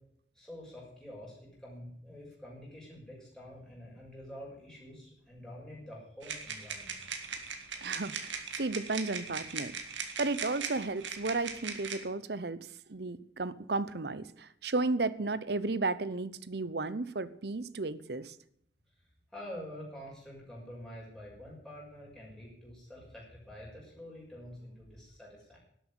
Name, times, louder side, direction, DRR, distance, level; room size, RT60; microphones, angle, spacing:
voice 1, 0.3-7.0 19.3-25.6, left 1 dB, 5° left, -5 dB, 6.2 m, -47 dB
sound 1, 6.2-12.0, right 6 dB, 90° right, 2.2 m, -39 dB
voice 2, 7.8-9.8 10.2-18.4, right 3 dB, 60° right, 17 dB, 0.8 m, -34 dB
12.0 x 8.2 x 9.9 m, 0.69 s
head